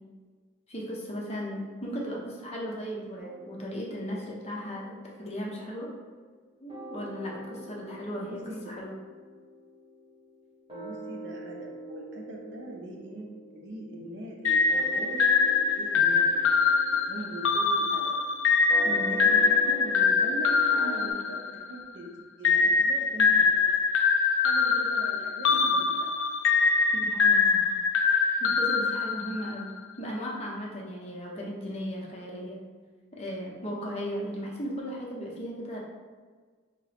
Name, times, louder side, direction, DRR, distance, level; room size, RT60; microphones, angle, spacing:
voice 1, 0.7-5.9 6.6-8.9 18.8-19.2 26.9-27.7 28.4-32.6 33.1-35.8, equal, 30° left, -3 dB, 0.7 m, -36 dB
sound 1, 3.2-6.4 6.7-21.1, equal, 25° right, 1.1 m, -44 dB
voice 2, 8.2-8.7 10.7-13.3 13.5-16.4 17.1-18.2 18.8-22.1 22.4-23.7 24.4-26.0, right 1 dB, 55° right, 0 dB, 0.5 m, -41 dB
sound 2, 14.4-21.9 22.4-29.7, left 5 dB, 65° left, 0.4 m, -24 dB
3.6 x 2.9 x 3.3 m, 1.5 s
head